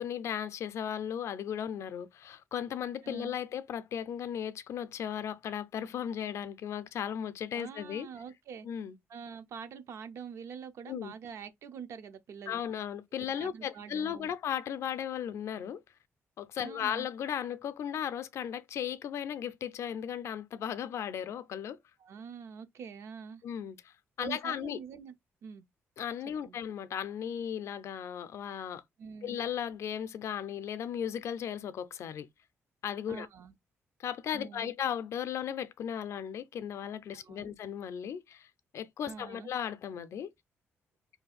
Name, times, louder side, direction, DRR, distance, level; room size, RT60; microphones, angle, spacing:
voice 1, 0.0-8.1 8.6-9.0 10.9-11.1 12.5-15.8 16.4-21.8 23.4-23.9 24.2-24.8 26.0-28.8 29.2-32.3 32.8-33.3 34.0-38.5 38.7-40.3, left 9 dB, 65° left, 0.4 m, -36 dB
voice 2, 3.0-3.3 7.5-8.7 9.1-12.6 13.2-14.3 16.6-17.1 22.0-23.4 24.2-25.1 25.4-25.7 26.2-26.6 29.0-29.3 33.1-33.6 34.3-34.7 37.1-37.5 39.1-39.5, right 6 dB, 65° right, 0.5 m, -45 dB
2.7 x 2.4 x 3.9 m
cardioid pair, 140°, 5 cm